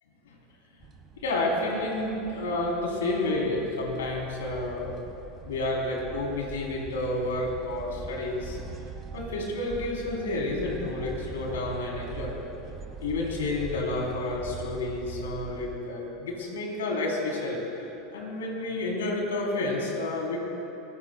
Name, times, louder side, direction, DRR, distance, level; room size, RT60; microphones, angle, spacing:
sound 1, 0.8-15.8, right 5 dB, 35° right, 1.5 m, -42 dB
voice 1, 1.2-5.0 5.4-8.6 9.1-12.4 13.0-17.6 18.1-20.4, left 2 dB, 75° left, -1 dB, 3.5 m, -30 dB
28.0 x 16.5 x 2.3 m, 2.9 s
hypercardioid pair, 80°, 0 cm